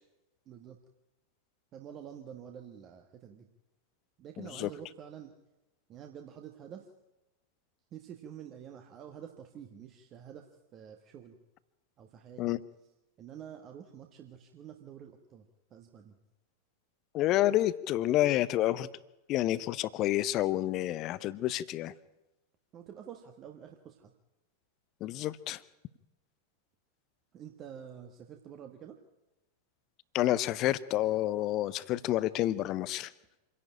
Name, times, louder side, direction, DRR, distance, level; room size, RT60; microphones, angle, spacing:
voice 1, 0.4-0.8 1.7-3.5 4.2-5.3 5.9-6.9 7.9-11.4 12.0-12.6 13.2-16.2 22.7-24.1 27.3-29.0, right 9 dB, 30° right, 5 dB, 1.5 m, -48 dB
voice 2, 4.4-4.7 12.4-12.6 17.1-18.9 19.3-21.9 25.0-25.6 30.1-33.1, left 14 dB, 35° left, 18 dB, 0.8 m, -29 dB
26.5 x 11.0 x 8.7 m, 0.99 s
figure-of-eight pair, 90°, 0 cm